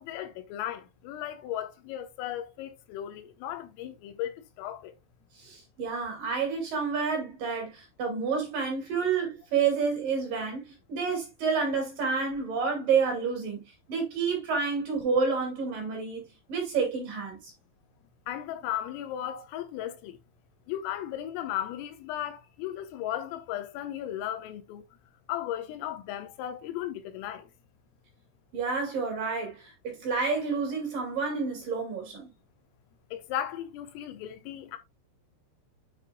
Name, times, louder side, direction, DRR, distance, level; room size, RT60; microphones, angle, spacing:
voice 1, 0.0-4.9 18.3-20.2 20.7-24.8 25.3-27.5 33.1-34.8, left 11 dB, 80° left, 3.6 m, -36 dB
voice 2, 5.3-13.6 13.9-17.5 28.5-32.3, right 5 dB, 50° right, 3.4 m, -29 dB
8.7 x 7.1 x 2.2 m
omnidirectional pair, 6.0 m